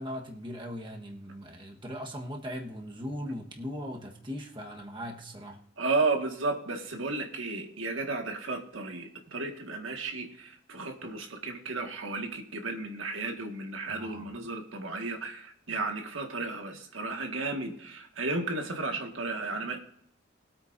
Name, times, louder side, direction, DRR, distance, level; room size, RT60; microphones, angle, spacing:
voice 1, 0.0-5.6 13.9-14.4, equal, 25° right, 1 dB, 1.3 m, -39 dB
voice 2, 5.8-19.8, right 3 dB, 85° right, 3 dB, 1.8 m, -33 dB
21.5 x 8.8 x 2.6 m, 0.69 s
head